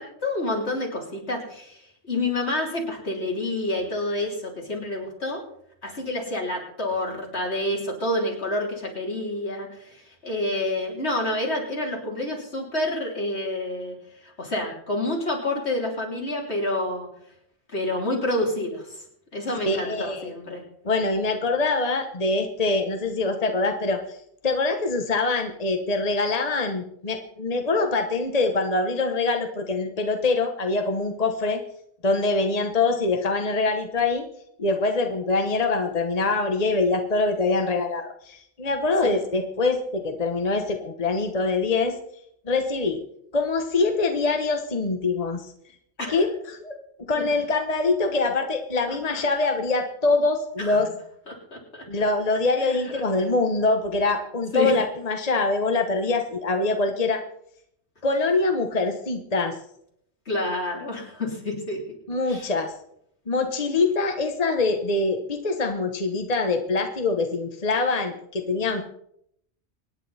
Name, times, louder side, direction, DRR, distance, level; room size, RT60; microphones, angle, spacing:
voice 1, 0.0-5.4 5.8-14.0 14.2-17.1 17.7-19.0 19.3-20.6 39.0-39.1 46.0-46.2 48.9-49.0 50.6-50.8 51.3-51.9 52.6-52.8 54.5-54.7 60.3-61.8 62.3-62.5, left 1 dB, 75° left, -1 dB, 3.7 m, -28 dB
voice 2, 19.7-20.3 20.8-24.2 24.4-31.6 32.0-34.3 34.6-42.0 42.4-43.0 43.3-45.5 46.1-46.8 47.1-50.9 51.9-57.2 58.0-59.6 62.1-62.7 63.3-68.8, left 3 dB, 35° left, 5 dB, 1.2 m, -24 dB
24.5 x 10.0 x 4.2 m, 0.72 s
omnidirectional pair, 1.1 m